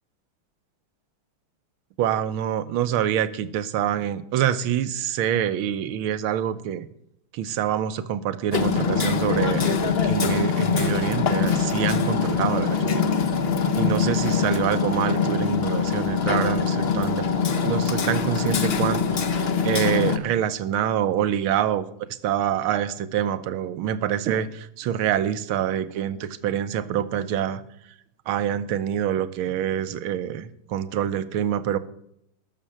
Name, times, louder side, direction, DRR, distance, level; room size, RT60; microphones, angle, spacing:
voice 1, 2.0-6.9 7.3-13.1 13.8-17.3 17.6-21.8 22.2-27.6 28.3-31.8, right 10 dB, 75° right, 14 dB, 1.6 m, -26 dB
Hammer, 8.5-20.2, left 6 dB, 50° left, 0.7 m, -23 dB
13.0 x 6.7 x 8.7 m, 0.76 s
omnidirectional pair, 2.4 m